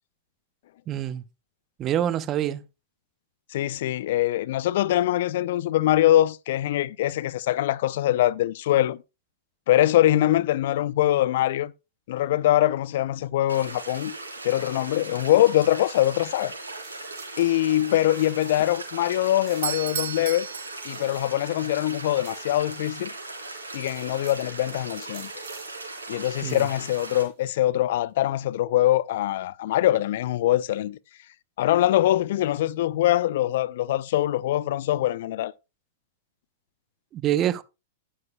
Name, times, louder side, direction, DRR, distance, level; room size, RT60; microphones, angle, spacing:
voice 1, 0.9-1.2 1.8-2.6 26.4-26.7 37.1-37.6, right 11 dB, 30° right, 0.7 m, -26 dB
voice 2, 3.5-9.0 9.7-11.7 12.1-14.1 14.4-16.5 17.4-20.5 20.8-23.1 23.7-25.3 26.1-31.0 31.6-35.5, left 13 dB, 60° left, 0.4 m, -23 dB
sound 1, 13.5-27.2, right 2 dB, 85° right, 3.7 m, -39 dB
sound 2, 16.7-18.9 19.2-23.2 23.5-24.5 25.0-25.9 26.3-27.4, right 10 dB, 50° right, 2.5 m, -52 dB
Doorbell, 19.5-21.4, right 9 dB, 65° right, 0.7 m, -33 dB
12.0 x 10.5 x 2.2 m
figure-of-eight pair, 100°, 0 cm